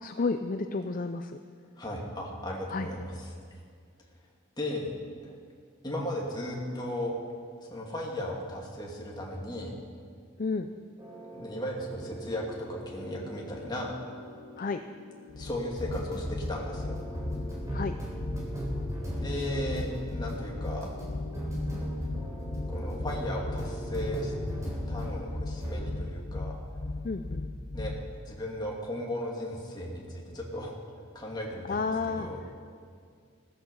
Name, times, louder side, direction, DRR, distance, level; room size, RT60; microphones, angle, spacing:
voice 1, 0.0-1.4 2.7-2.9 10.4-10.7 14.6-14.8 17.7-17.9 27.0-27.5 31.7-32.3, left 4 dB, 40° left, 8 dB, 0.5 m, -31 dB
voice 2, 1.8-3.4 4.6-4.9 5.2-5.3 5.8-7.1 7.6-9.7 11.3-13.9 15.4-17.0 19.2-20.9 22.7-24.3 24.9-26.5 27.7-27.9 28.2-30.8 31.1-32.4, left 1 dB, 20° left, -2 dB, 2.5 m, -36 dB
sound 1, 11.0-25.3 25.6-25.9, equal, 15° right, 3.7 m, -38 dB
sound 2, 15.3-28.2, left 2 dB, 75° left, 0.9 m, -37 dB
17.0 x 13.5 x 5.5 m, 2.2 s
head